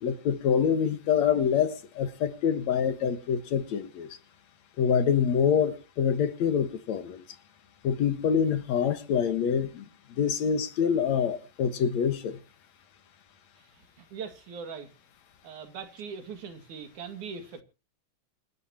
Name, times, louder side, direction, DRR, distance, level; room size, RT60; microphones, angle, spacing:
voice 1, 0.0-4.1 4.8-7.2 7.8-9.9 10.2-12.4, left 7 dB, 70° left, 2.7 m, -26 dB
voice 2, 13.6-14.9 15.4-17.6, right 6 dB, 80° right, 3.6 m, -41 dB
27.5 x 11.0 x 2.9 m
omnidirectional pair, 3.4 m